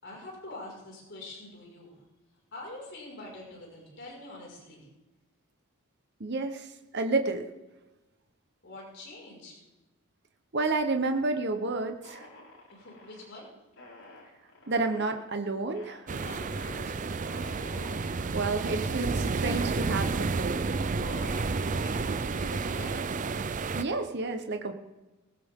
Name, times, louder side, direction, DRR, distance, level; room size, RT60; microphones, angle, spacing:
voice 1, 0.0-2.0 2.5-4.9 8.6-9.6 12.7-13.5 14.0-14.1 16.1-17.1 21.6-23.2, left 2 dB, 55° left, -3 dB, 5.5 m, -45 dB
voice 2, 6.2-6.7 6.9-7.5 10.5-12.3 14.7-16.1 18.3-20.6 23.7-24.7, right 3 dB, 50° right, 6 dB, 1.0 m, -30 dB
sound 1, 12.0-13.3 13.7-15.2 15.7-16.0 16.5-16.7 17.2-18.0 18.6-18.7 19.0-19.7 20.3-20.5 20.8-21.5, left 2 dB, 80° left, 6.1 m, -47 dB
sound 2, 16.1-23.8, right 4 dB, 35° right, 0.5 m, -31 dB
19.0 x 15.5 x 3.7 m, 1.1 s
head